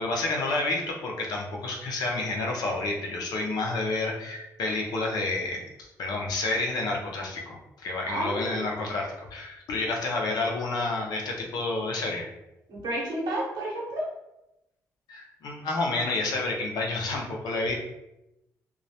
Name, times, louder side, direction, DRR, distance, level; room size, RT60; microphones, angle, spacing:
voice 1, 0.0-12.3 15.1-17.7, left 2 dB, 75° left, 0 dB, 0.5 m, -29 dB
voice 2, 8.1-8.6 12.7-14.1, right 1 dB, 80° right, -4 dB, 0.9 m, -31 dB
2.2 x 2.0 x 2.7 m, 0.91 s
supercardioid pair, 60°, 7 cm